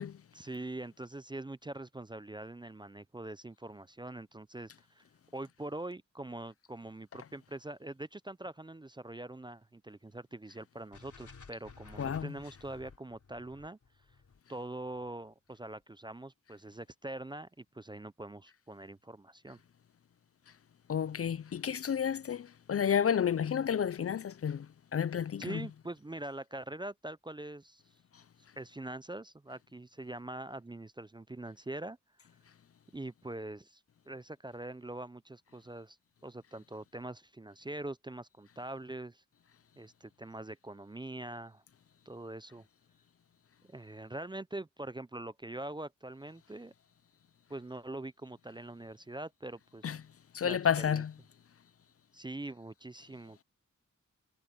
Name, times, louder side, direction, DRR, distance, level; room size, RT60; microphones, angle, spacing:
voice 1, 0.3-5.0 5.3-13.8 14.5-19.6 25.4-27.8 28.6-32.0 32.9-33.8 34.1-36.0 36.2-39.2 39.8-41.6 42.1-42.7 43.6-46.7 47.5-50.0 50.4-50.6 50.9-51.0 52.1-53.4, right 2 dB, 15° right, 0.4 m, -43 dB
sound 1, 10.9-15.1, left 5 dB, 70° left, 3.6 m, -54 dB
voice 2, 12.0-12.3 20.9-25.6 49.8-50.0 50.3-51.1, left 8 dB, 50° left, 0.4 m, -31 dB
wide cardioid pair, 90°, 31 cm